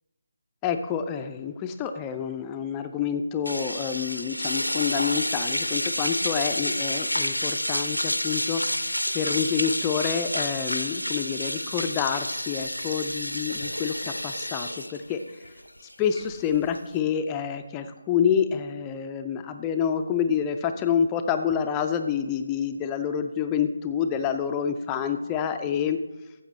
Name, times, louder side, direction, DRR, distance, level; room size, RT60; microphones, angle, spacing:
voice 1, 0.6-15.2 16.0-26.0, left 7 dB, 15° left, 7 dB, 0.3 m, -28 dB
sound 1, 3.5-17.0, left 1 dB, 85° left, 0.6 m, -29 dB
13.0 x 7.8 x 3.1 m, 1.1 s
figure-of-eight pair, 150°, 0 cm